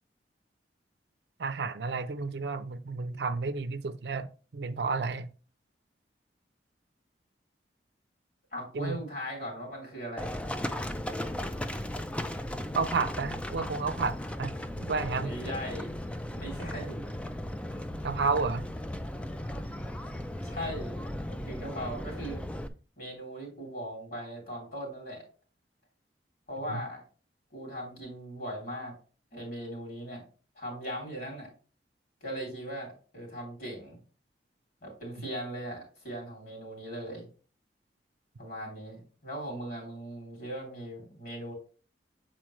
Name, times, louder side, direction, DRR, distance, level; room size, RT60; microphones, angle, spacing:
voice 1, 1.4-4.3 4.5-5.3 8.7-9.0 12.7-15.3 18.0-18.6 26.7-26.8, right 4 dB, 65° right, 0.5 m, -31 dB
voice 2, 8.5-10.3 15.2-15.9 16.3-17.0 20.4-21.0 21.3-22.4 23.0-25.2 26.5-27.0 27.5-28.9 29.3-30.2 30.5-31.5 32.2-34.0 34.8-37.3 38.4-41.5, equal, 55° left, 3.0 m, -39 dB
Livestock farm animals working animals, 10.2-22.7, left 1 dB, 5° left, 0.4 m, -36 dB
7.6 x 4.3 x 3.1 m
head